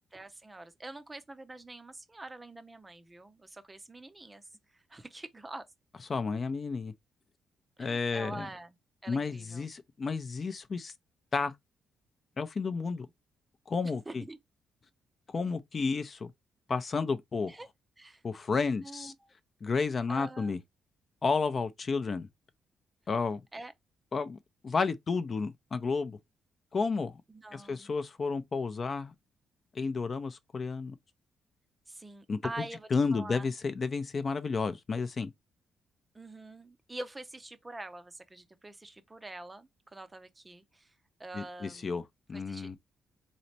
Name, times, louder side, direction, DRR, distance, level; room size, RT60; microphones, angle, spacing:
voice 1, 0.1-4.4 4.7-5.7 7.8-8.8 9.0-9.6 12.7-13.1 13.8-14.4 17.5-17.7 18.0-18.2 18.8-19.3 20.1-20.5 23.5-23.7 27.3-27.9 31.9-33.5 36.1-40.9 41.2-42.0 42.3-42.7, right 2 dB, 15° right, 0.6 m, -45 dB
voice 2, 6.1-6.9 7.8-8.5 9.1-10.9 11.3-11.5 12.4-13.1 13.7-14.2 15.3-16.3 16.7-17.6 18.2-19.1 19.6-20.6 21.2-22.3 23.1-23.4 24.1-24.4 24.6-26.2 26.7-27.2 27.5-29.1 29.7-31.0 32.3-32.4 32.9-35.3 41.3-42.0 42.3-42.8, left 4 dB, 35° left, 0.5 m, -31 dB
4.0 x 3.2 x 2.7 m
cardioid pair, 130°, 0 cm